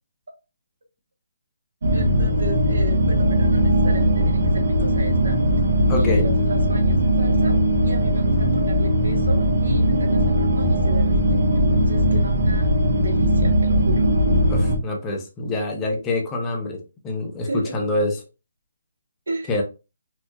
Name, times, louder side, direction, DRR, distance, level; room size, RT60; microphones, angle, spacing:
sound 1, 1.8-14.8, equal, 50° right, 0.8 m, -19 dB
voice 1, 1.9-5.4 5.9-14.1 17.4-17.7 19.3-19.5, right 2 dB, 85° right, 2 dB, 1.0 m, -34 dB
voice 2, 5.9-6.3 14.5-18.2 19.5-19.6, left 2 dB, 10° left, 1 dB, 0.5 m, -25 dB
4.4 x 2.5 x 2.2 m, 0.30 s
hypercardioid pair, 180°, 0 cm